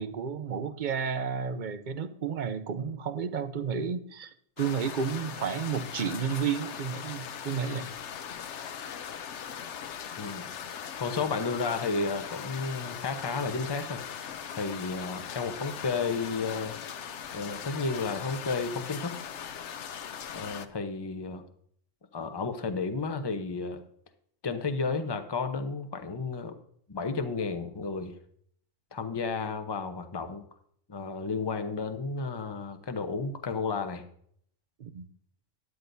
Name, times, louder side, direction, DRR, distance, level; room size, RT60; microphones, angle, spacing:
voice 1, 0.0-4.3 4.6-7.9 34.8-35.1, right 6 dB, 50° right, 12 dB, 0.6 m, -32 dB
sound 1, 4.6-20.7, left 8 dB, 65° left, 1.0 m, -40 dB
voice 2, 11.0-14.0 14.5-16.8 17.3-19.2 20.3-21.4 22.1-23.8 24.4-26.6 26.9-28.2 28.9-30.4 30.9-34.0, left 4 dB, 25° left, 7 dB, 0.8 m, -32 dB
12.5 x 11.0 x 2.7 m, 0.64 s
omnidirectional pair, 1.3 m